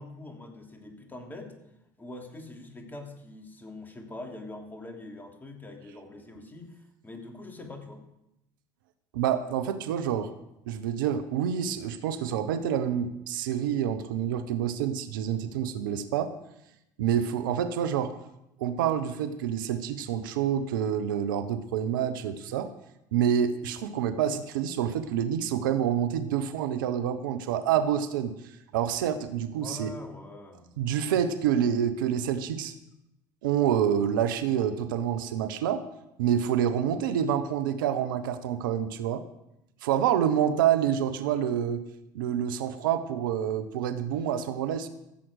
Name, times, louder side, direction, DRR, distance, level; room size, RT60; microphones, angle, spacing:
voice 1, 0.0-1.6 2.0-8.1 29.5-30.7, left 2 dB, 15° left, 2 dB, 3.1 m, -43 dB
voice 2, 9.1-10.3 10.7-16.3 17.0-18.1 18.6-22.7 23.1-29.9 30.8-32.7 33.4-35.8 36.2-39.2 39.8-41.8 42.1-44.9, right 9 dB, 75° right, 11 dB, 0.9 m, -27 dB
15.5 x 7.7 x 6.4 m, 0.85 s
hypercardioid pair, 70°, 11 cm